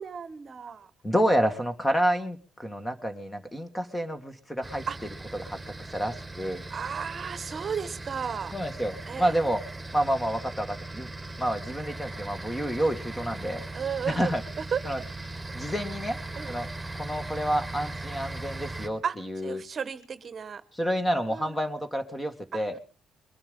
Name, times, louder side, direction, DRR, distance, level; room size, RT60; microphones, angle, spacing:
voice 1, 0.0-0.9 4.8-5.0 6.7-8.6 9.1-9.3 13.7-14.3 14.7-15.1 16.3-16.5 19.0-20.6 21.3-21.6 22.5-22.6, right 7 dB, 45° right, 13 dB, 1.1 m, -34 dB
voice 2, 1.0-4.8 5.4-5.6 5.9-6.6 8.5-9.6 9.9-11.1 11.4-13.6 14.1-14.4 14.9-15.0 15.5-16.2 16.5-16.7 17.0-19.6 20.7-22.8, equal, 10° left, 8 dB, 2.1 m, -29 dB
sound 1, 4.6-18.9, right 2 dB, 5° right, 3.1 m, -39 dB
22.5 x 11.5 x 5.4 m, 0.39 s
cardioid pair, 90°, 0 cm